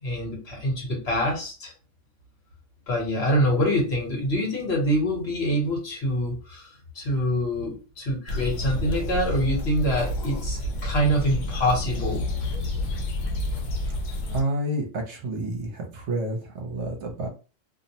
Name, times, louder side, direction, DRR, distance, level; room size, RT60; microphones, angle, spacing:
voice 1, 0.0-1.7 2.9-12.2 13.6-13.7, equal, 55° left, -1 dB, 1.2 m, -25 dB
sound 1, 8.3-14.4, left 1 dB, 80° left, 1.0 m, -29 dB
voice 2, 14.3-17.3, right 1 dB, 65° right, 1 dB, 0.9 m, -29 dB
2.5 x 2.0 x 2.7 m, 0.34 s
omnidirectional pair, 1.3 m